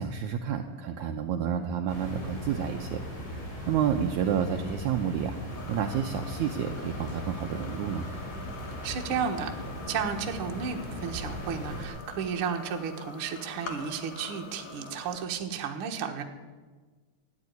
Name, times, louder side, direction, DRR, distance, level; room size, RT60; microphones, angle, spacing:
voice 1, 0.0-3.0 3.7-5.4 5.7-8.1, right 8 dB, 75° right, 4 dB, 1.9 m, -30 dB
sound 1, 1.9-11.9, equal, 70° left, 7.2 m, -39 dB
sound 2, 5.5-15.2, left 4 dB, 50° left, 2.3 m, -45 dB
voice 2, 8.8-9.5 9.9-16.2, right 7 dB, 55° right, 4 dB, 1.7 m, -33 dB
13.5 x 10.0 x 9.5 m, 1.4 s
omnidirectional pair, 3.9 m